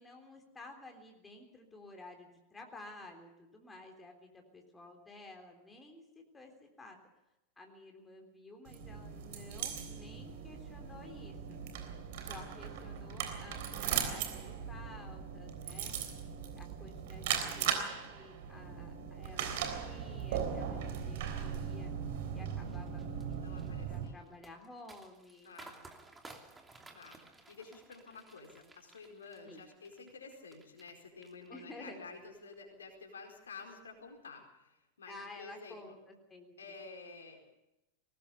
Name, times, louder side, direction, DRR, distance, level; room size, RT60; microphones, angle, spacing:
voice 1, 0.0-7.0 7.6-11.6 12.2-16.0 16.6-21.9 22.3-25.5 29.4-29.6 31.5-32.0 35.1-36.8, left 2 dB, 10° left, 3 dB, 3.6 m, -53 dB
sound 1, 8.7-24.0, right 8 dB, 50° right, 3.5 m, -38 dB
sound 2, 22.7-30.9 31.2-31.9 32.3-32.5, right 2 dB, 10° right, 2.8 m, -56 dB
voice 2, 23.4-24.4 25.4-25.8 26.9-27.2 27.5-35.8 36.6-37.4, left 4 dB, 70° left, 2 dB, 4.6 m, -51 dB
21.0 x 19.0 x 6.9 m, 0.92 s
figure-of-eight pair, 90°, 0 cm